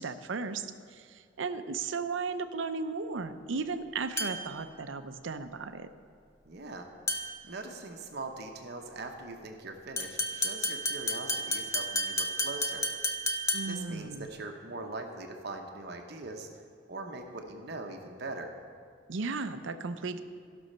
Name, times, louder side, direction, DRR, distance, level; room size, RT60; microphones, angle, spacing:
voice 1, 0.0-5.9 13.5-14.3 19.1-20.2, right 4 dB, 80° right, 10 dB, 0.6 m, -35 dB
sound 1, 4.2-4.6 7.1-7.5 10.0-13.9, left 1 dB, 15° left, 0.7 m, -32 dB
voice 2, 6.4-6.9 7.4-12.9 13.6-16.5 16.9-18.5, right 2 dB, 60° right, 3 dB, 1.0 m, -41 dB
15.0 x 6.2 x 5.5 m, 2.3 s
head